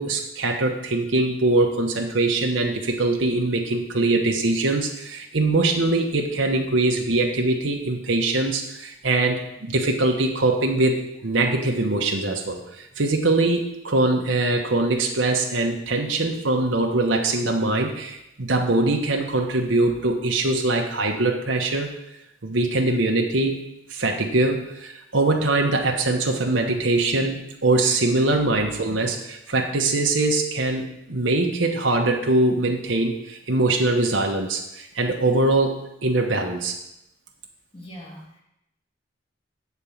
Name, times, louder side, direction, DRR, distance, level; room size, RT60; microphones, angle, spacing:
voice 1, 0.0-21.9 22.4-23.6 23.9-36.7, right 2 dB, 75° right, 1 dB, 1.0 m, -22 dB
voice 2, 37.7-38.4, equal, 30° left, -5 dB, 2.8 m, -41 dB
8.3 x 4.5 x 7.2 m, 0.85 s
head